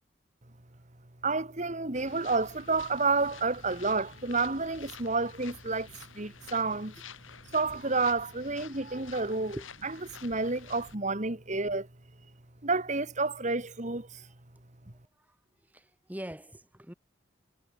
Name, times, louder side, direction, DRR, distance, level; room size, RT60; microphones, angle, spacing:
voice 1, 1.2-5.9 6.2-6.9 7.5-9.6 9.8-11.9 12.6-14.3, right 3 dB, 35° right, 2.2 m, -30 dB
sound 1, 1.9-11.0, left 6 dB, 85° left, 4.1 m, -50 dB
voice 2, 15.7-16.9, equal, 10° right, 2.2 m, -42 dB
head